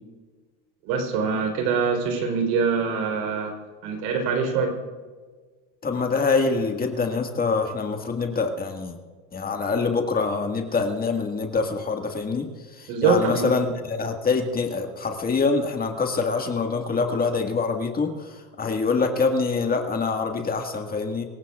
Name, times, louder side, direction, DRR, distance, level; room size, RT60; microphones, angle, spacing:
voice 1, 0.8-3.6 3.8-4.7 12.9-13.5, right 5 dB, 70° right, 4 dB, 4.1 m, -24 dB
voice 2, 5.8-9.0 9.3-21.2, left 4 dB, 25° left, 3 dB, 1.8 m, -25 dB
25.5 x 16.0 x 2.5 m, 1.4 s
supercardioid pair, 115°, 37 cm